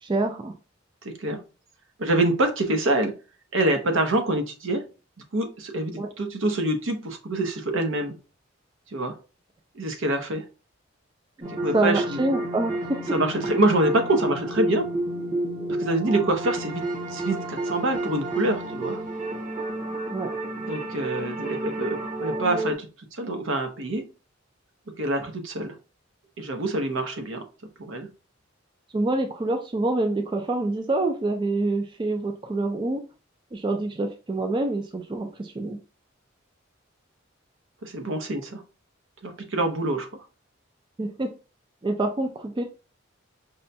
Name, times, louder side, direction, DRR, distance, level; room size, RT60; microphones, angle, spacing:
voice 1, 0.0-0.5 6.0-6.1 11.4-11.5 11.7-13.0 20.1-20.3 28.9-33.0 33.5-35.8 41.0-41.3 41.8-42.6, right 2 dB, 25° right, 4 dB, 0.3 m, -26 dB
voice 2, 1.0-1.4 2.0-3.1 3.5-4.8 5.3-8.1 8.9-9.2 9.7-10.4 11.5-12.2 13.1-14.9 15.8-16.8 17.1-19.0 20.6-22.9 23.1-24.0 25.0-25.7 26.4-27.4 27.9-28.1 37.8-38.6 39.2-40.1, right 1 dB, 75° right, 5 dB, 0.8 m, -25 dB
sound 1, 11.4-22.7, right 1 dB, 40° right, 1.1 m, -31 dB
5.2 x 2.2 x 2.6 m, 0.33 s
head